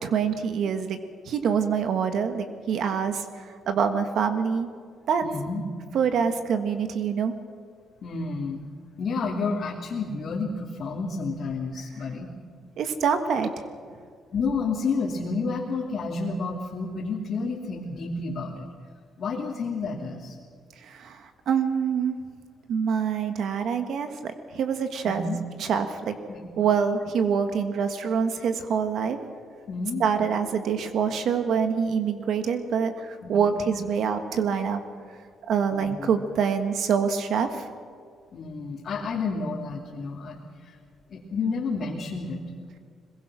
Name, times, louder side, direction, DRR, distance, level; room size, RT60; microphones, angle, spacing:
voice 1, 0.0-1.0 1.2-4.7 5.1-5.3 5.9-7.3 12.8-13.5 20.8-22.2 22.7-25.2 25.6-26.1 26.6-29.2 30.0-34.8 35.5-37.6, right 6 dB, 70° right, 8 dB, 1.6 m, -25 dB
voice 2, 5.2-5.6 8.0-8.6 9.0-12.3 14.3-18.7 19.2-20.4 25.0-25.4 26.3-26.5 29.7-30.0 33.2-33.6 35.7-36.1 38.3-40.7 41.1-42.4, left 4 dB, 55° left, -4 dB, 2.7 m, -30 dB
22.0 x 21.5 x 6.2 m, 2.1 s
cardioid pair, 90°, 0 cm